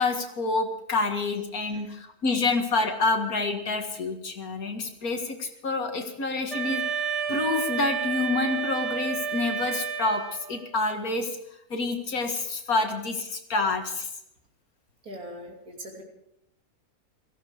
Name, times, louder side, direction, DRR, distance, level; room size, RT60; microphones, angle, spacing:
voice 1, 0.0-6.8 7.3-11.4 11.7-14.1, left 3 dB, 75° left, 4 dB, 2.3 m, -28 dB
Wind instrument woodwind instrument, 6.5-10.7, right 7 dB, 25° right, 1.6 m, -30 dB
voice 2, 15.0-16.0, equal, 75° right, 0 dB, 3.7 m, -40 dB
17.5 x 15.0 x 5.1 m, 0.81 s
omnidirectional pair, 1.6 m